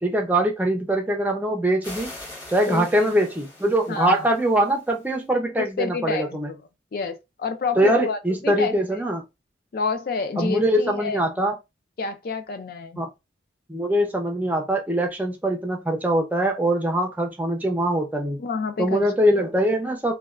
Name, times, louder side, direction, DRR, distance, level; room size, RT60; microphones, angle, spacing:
voice 1, 0.0-2.1 2.5-6.5 7.8-9.2 10.4-11.6 13.0-13.1 13.7-18.4 18.8-20.1, right 1 dB, 10° right, 0.5 m, -22 dB
sound 1, 1.8-5.1, left 1 dB, 20° left, 1.3 m, -42 dB
voice 2, 2.7-3.3 3.9-4.3 5.6-6.5 6.9-8.7 9.7-11.2 12.0-13.0 18.4-19.1, left 4 dB, 50° left, 0.3 m, -29 dB
3.2 x 2.2 x 2.4 m
head